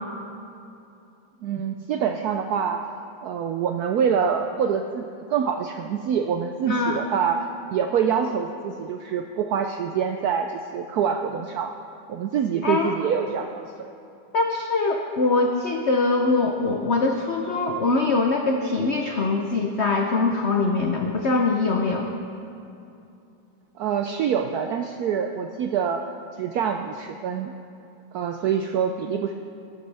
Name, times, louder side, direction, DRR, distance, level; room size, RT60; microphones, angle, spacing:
voice 1, 1.4-2.8 3.2-11.7 12.1-13.9 23.8-26.1 26.4-27.5 28.1-29.3, right 7 dB, 80° right, 5 dB, 0.8 m, -25 dB
voice 2, 6.7-7.0 12.6-12.9 14.3-22.1, left 3 dB, 75° left, 2 dB, 0.6 m, -23 dB
16.0 x 13.0 x 3.4 m, 2.7 s
omnidirectional pair, 2.2 m